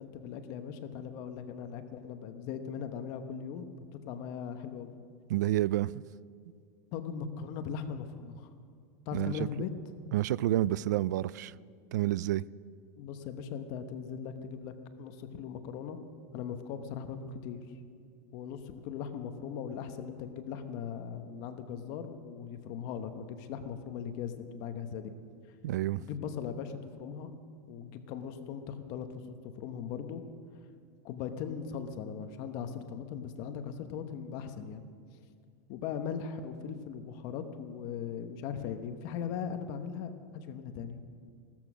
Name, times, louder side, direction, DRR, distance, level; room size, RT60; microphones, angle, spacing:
voice 1, 0.0-3.7 4.0-4.9 6.9-8.5 9.1-9.7 13.0-16.0 16.3-17.6 18.3-25.1 26.0-27.3 27.7-30.2 31.0-34.8 35.7-41.0, left 7 dB, 40° left, 9 dB, 1.0 m, -39 dB
voice 2, 5.3-6.0 9.1-9.3 10.1-11.5 11.9-12.4 25.6-26.0, right 14 dB, 90° right, 21 dB, 0.4 m, -29 dB
16.5 x 13.5 x 6.1 m, 2.2 s
supercardioid pair, 165°, 9 cm